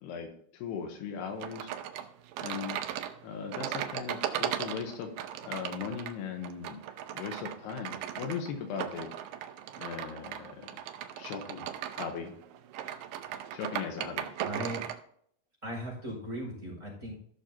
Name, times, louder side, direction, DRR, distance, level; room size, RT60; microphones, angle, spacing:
voice 1, 0.0-1.7 2.4-2.8 3.2-5.1 5.4-6.8 7.1-9.1 9.8-10.8 11.2-11.7 11.9-12.3 13.5-14.3, left 7 dB, 85° left, 6 dB, 3.1 m, -38 dB
sound 1, 1.4-15.0, right 11 dB, 90° right, 1.9 m, -38 dB
voice 2, 14.4-14.8 15.6-17.1, equal, 10° right, -4 dB, 4.5 m, -38 dB
15.5 x 6.5 x 2.8 m, 0.65 s
omnidirectional pair, 4.6 m